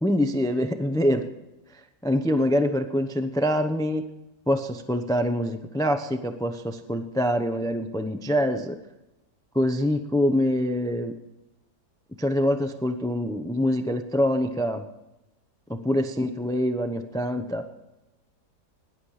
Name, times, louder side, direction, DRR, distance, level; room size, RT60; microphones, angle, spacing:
voice 1, 0.0-1.3 2.0-4.1 4.5-8.8 9.5-11.2 12.2-14.9 15.7-17.7, equal, 5° left, 8 dB, 0.5 m, -25 dB
17.5 x 11.0 x 5.0 m, 0.99 s
omnidirectional pair, 1.8 m